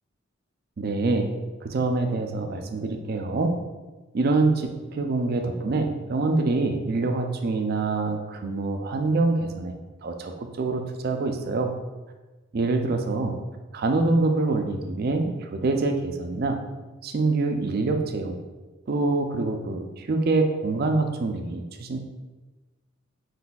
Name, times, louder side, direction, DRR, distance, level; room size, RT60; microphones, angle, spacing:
voice 1, 0.8-1.3 1.6-3.6 4.1-9.7 10.0-11.7 12.5-13.4 13.7-16.6 17.0-18.4 18.9-22.0, right 3 dB, 45° right, 5 dB, 0.4 m, -25 dB
4.6 x 4.1 x 2.3 m, 1.2 s
head